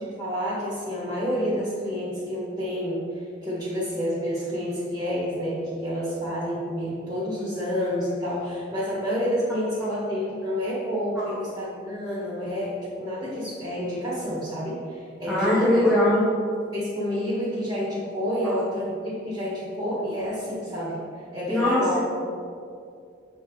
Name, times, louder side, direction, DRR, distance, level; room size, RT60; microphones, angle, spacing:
voice 1, 0.2-15.7 16.7-21.0 21.3-22.0, equal, 15° right, -9 dB, 1.6 m, -29 dB
voice 2, 15.3-16.2 18.4-18.5 21.5-22.0, left 1 dB, ahead, -8 dB, 0.9 m, -22 dB
7.7 x 3.7 x 4.7 m, 2.4 s
head